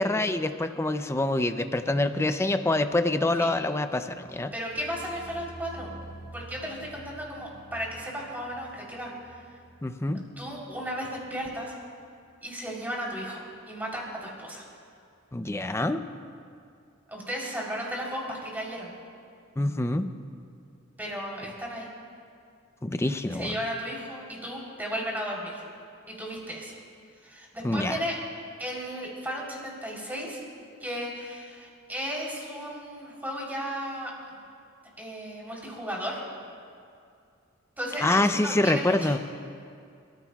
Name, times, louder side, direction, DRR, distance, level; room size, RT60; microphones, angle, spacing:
voice 1, 0.0-4.5 9.8-10.3 15.3-16.1 19.6-20.1 22.8-23.6 27.6-28.0 38.0-39.2, left 2 dB, 15° left, 9 dB, 0.5 m, -26 dB
voice 2, 4.5-5.9 6.3-9.4 10.4-11.7 12.4-14.7 17.1-18.9 21.0-21.9 23.3-25.6 26.1-26.8 27.2-28.2 28.6-30.4 30.8-34.1 35.0-36.2 37.8-39.2, equal, 10° right, -4 dB, 3.5 m, -35 dB
sound 1, 4.6-11.6 11.9-12.3 12.7-12.8, right 1 dB, 30° left, 4.3 m, -49 dB
29.0 x 14.5 x 2.3 m, 2.4 s
head